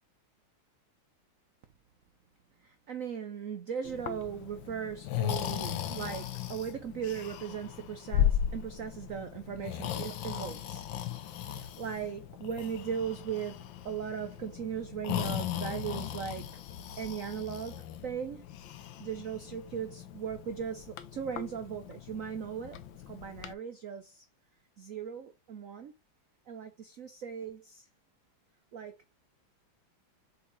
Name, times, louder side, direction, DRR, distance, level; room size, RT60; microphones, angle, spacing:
voice 1, 2.6-10.8 11.5-16.6 17.0-18.5 19.0-22.8 23.1-24.2 24.8-25.9 26.5-27.9 28.7-29.0, right 7 dB, 65° right, 0.8 m, -38 dB
Breathing, 3.8-23.5, left 10 dB, 70° left, 1.4 m, -37 dB
7.4 x 4.2 x 3.1 m
omnidirectional pair, 2.3 m